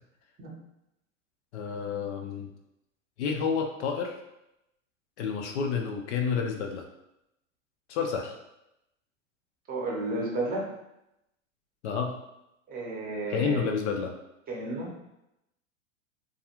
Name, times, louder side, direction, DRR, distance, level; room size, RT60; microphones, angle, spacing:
voice 1, 1.5-2.5 3.2-4.2 5.2-6.8 7.9-8.4 11.8-12.2 13.3-14.1, left 6 dB, 60° left, 3 dB, 0.5 m, -30 dB
voice 2, 9.7-10.7 12.7-13.7 14.5-14.9, right 2 dB, 20° right, -3 dB, 0.7 m, -32 dB
2.4 x 2.2 x 2.9 m, 0.87 s
hypercardioid pair, 105°, 40 cm